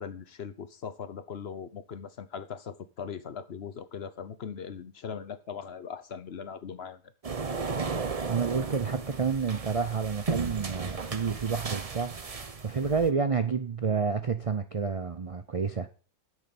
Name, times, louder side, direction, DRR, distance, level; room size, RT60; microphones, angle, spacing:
voice 1, 0.0-7.0, left 7 dB, 50° left, 1.0 m, -40 dB
sound 1, 7.2-13.1, right 4 dB, 30° right, 0.8 m, -35 dB
voice 2, 8.3-15.9, right 5 dB, 50° right, 0.4 m, -29 dB
8.8 x 6.4 x 7.8 m
omnidirectional pair, 1.5 m